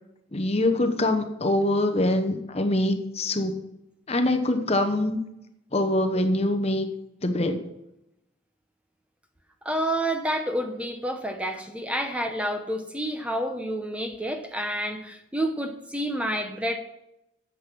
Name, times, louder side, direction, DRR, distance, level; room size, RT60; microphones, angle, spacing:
voice 1, 0.3-3.6 4.1-5.2 5.7-6.9 7.2-7.7, left 1 dB, 30° left, 7 dB, 0.9 m, -24 dB
voice 2, 9.6-16.8, right 1 dB, 5° right, 5 dB, 0.9 m, -29 dB
10.0 x 7.7 x 6.2 m, 0.85 s
head